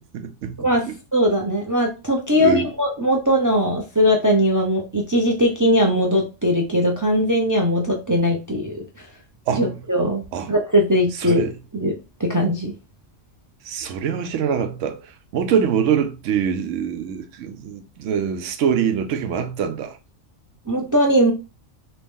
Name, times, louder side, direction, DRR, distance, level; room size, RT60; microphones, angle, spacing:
voice 1, 0.1-0.6 2.4-2.7 9.5-9.7 10.3-10.5 11.2-11.5 13.6-20.0, right 7 dB, 80° right, 0.9 m, -24 dB
voice 2, 1.1-8.8 9.6-11.9 12.2-12.7 20.7-21.3, equal, 30° right, 0.3 m, -20 dB
2.9 x 2.9 x 3.6 m
omnidirectional pair, 1.3 m